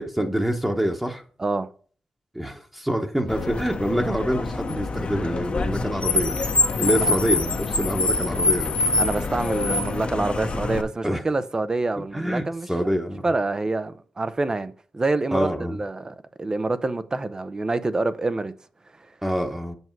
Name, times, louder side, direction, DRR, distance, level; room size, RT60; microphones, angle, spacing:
voice 1, 0.0-1.2 2.3-6.4 6.8-8.8 11.0-11.2 12.1-12.4 12.7-13.3 15.3-15.8 19.2-19.8, equal, 5° right, 1.1 m, -26 dB
voice 2, 1.4-1.7 6.9-7.2 9.0-12.7 13.2-18.5 19.0-19.1, right 2 dB, 30° right, 0.7 m, -27 dB
Car, 3.3-10.8, left 3 dB, 50° left, 1.1 m, -25 dB
8.1 x 6.2 x 4.6 m
cardioid pair, 95°, 2 cm